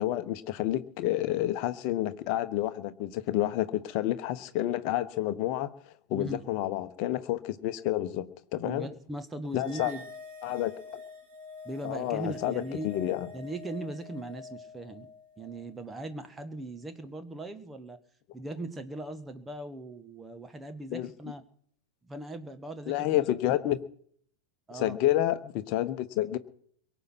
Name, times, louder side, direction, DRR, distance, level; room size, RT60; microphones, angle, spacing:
voice 1, 0.0-5.7 6.1-8.9 9.5-9.9 10.4-10.7 11.8-13.3 20.9-21.1 22.9-23.8 24.7-26.4, left 13 dB, 40° left, 11 dB, 1.1 m, -29 dB
voice 2, 8.6-10.0 11.6-12.9 13.3-15.1 15.4-18.0 18.3-21.4 22.0-23.3 24.7-25.0, right 1 dB, 10° right, 9 dB, 1.4 m, -39 dB
sound 1, 9.6-16.1, left 4 dB, 50° right, 5.9 m, -47 dB
23.0 x 8.1 x 6.1 m, 0.62 s
figure-of-eight pair, 90°, 0 cm